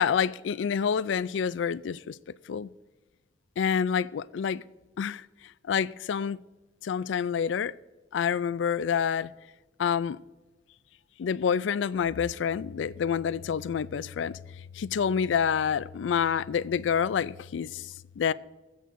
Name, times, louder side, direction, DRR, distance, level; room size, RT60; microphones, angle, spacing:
voice 1, 0.0-2.2 2.5-2.7 3.6-4.6 5.0-5.2 5.7-6.4 6.8-7.7 8.1-9.3 9.8-10.2 11.2-14.4 14.8-17.9 18.2-18.3, left 7 dB, 80° left, 0.3 m, -27 dB
21.5 x 7.9 x 2.6 m
head